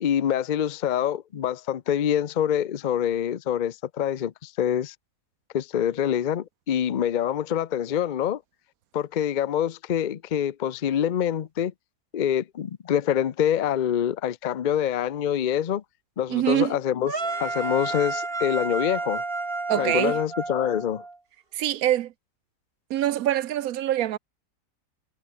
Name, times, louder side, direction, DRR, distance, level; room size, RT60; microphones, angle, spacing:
voice 1, 0.0-4.9 5.5-8.4 8.9-11.7 12.1-15.8 16.2-17.1 17.4-19.2 19.7-21.0, left 9 dB, 90° left, 0.4 m, -25 dB
voice 2, 16.3-16.8 19.7-20.2 21.5-22.1 22.9-24.2, right 12 dB, 70° right, 1.0 m, -24 dB
sound 1, 17.1-21.2, right 3 dB, 35° right, 2.7 m, -30 dB
omnidirectional pair, 1.7 m